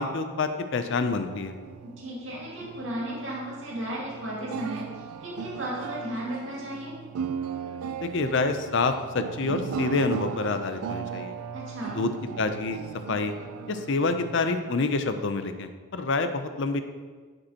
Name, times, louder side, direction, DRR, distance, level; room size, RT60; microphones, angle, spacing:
voice 1, 0.0-1.5 8.0-11.3 11.9-12.1 12.4-12.8 13.1-13.3 13.7-16.8, left 3 dB, 55° left, 9 dB, 0.5 m, -27 dB
sound 1, 0.9-15.6, right 7 dB, 90° right, 0.3 m, -37 dB
voice 2, 1.8-6.9 11.5-12.0, equal, 60° right, -5 dB, 2.3 m, -35 dB
10.5 x 5.3 x 2.8 m, 1.5 s
head